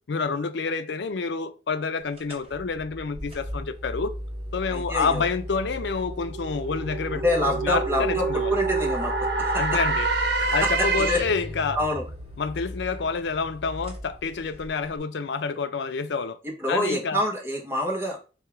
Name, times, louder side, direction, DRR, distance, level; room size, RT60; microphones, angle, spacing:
voice 1, 0.1-4.1 4.5-8.6 9.6-10.1 10.5-11.8 12.4-16.4 16.7-17.2, left 4 dB, 85° left, 0.5 m, -28 dB
sound 1, 2.1-15.0, equal, 35° right, 1.4 m, -36 dB
voice 2, 4.7-5.2 7.1-9.1 9.4-9.7 10.4-11.2 11.7-12.0 16.6-18.2, left 1 dB, 15° right, 1.1 m, -27 dB
sound 2, 5.4-11.5, right 4 dB, 70° right, 0.7 m, -27 dB
3.4 x 2.8 x 4.6 m
head